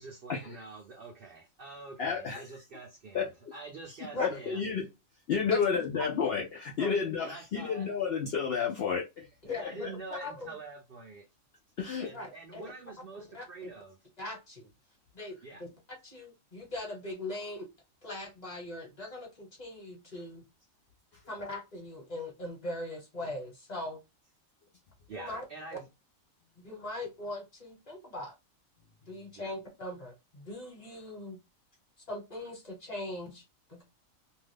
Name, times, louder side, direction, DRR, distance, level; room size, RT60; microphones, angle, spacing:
voice 1, 0.0-4.6 7.2-7.9 9.4-11.3 12.0-14.0 15.4-15.6 25.1-25.9 29.4-29.5, right 3 dB, 55° right, 0.7 m, -46 dB
voice 2, 2.0-2.4 3.1-3.3 4.2-4.9 5.3-9.3 11.8-12.1, left 6 dB, 60° left, 0.7 m, -31 dB
voice 3, 9.4-10.5 12.1-12.7 13.1-13.7 14.2-14.7 15.1-17.7 18.0-20.4 21.3-24.0 25.1-25.4 25.7-25.8 26.6-28.3 29.1-31.4 32.1-33.4 33.7-33.8, left 2 dB, 30° left, 1.2 m, -40 dB
2.6 x 2.3 x 3.4 m
omnidirectional pair, 1.4 m